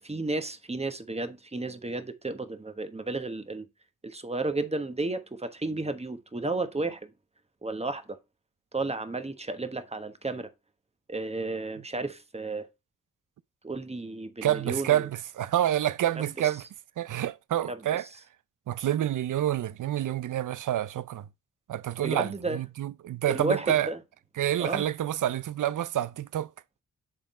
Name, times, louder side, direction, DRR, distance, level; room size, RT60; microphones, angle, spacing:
voice 1, 0.0-3.7 4.0-7.1 7.6-8.2 8.7-10.5 11.1-12.7 13.6-15.1 17.7-17.8 22.0-22.6 23.3-24.0 24.6-24.8, right 2 dB, 20° right, 1.2 m, -32 dB
voice 2, 14.4-16.6 17.0-18.1 18.7-21.3 21.7-23.9 24.4-26.5, right 12 dB, 65° right, 0.6 m, -28 dB
7.8 x 3.7 x 4.2 m
supercardioid pair, 45°, 33 cm